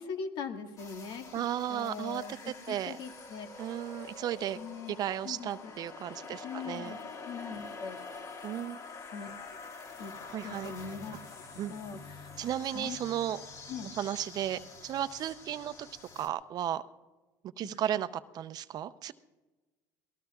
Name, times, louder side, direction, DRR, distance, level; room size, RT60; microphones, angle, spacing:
voice 1, 0.0-3.5 4.5-5.8 6.4-7.0 7.2-8.0 9.1-9.6 10.0-10.1 10.4-11.2 11.7-12.3 12.7-13.0 13.7-13.9, left 5 dB, 60° left, 5 dB, 1.8 m, -41 dB
sound 1, 0.8-16.3, left 4 dB, 40° left, 2.0 m, -46 dB
voice 2, 1.3-2.2 2.7-3.0 3.6-4.6 4.9-6.9 8.4-8.8 10.3-10.7 11.6-11.7 12.4-13.4 14.0-15.9 16.2-16.8 17.6-18.1 18.3-19.1, right 11 dB, 50° right, 13 dB, 0.6 m, -34 dB
26.5 x 19.5 x 2.4 m, 1.2 s
supercardioid pair, 105°, 9 cm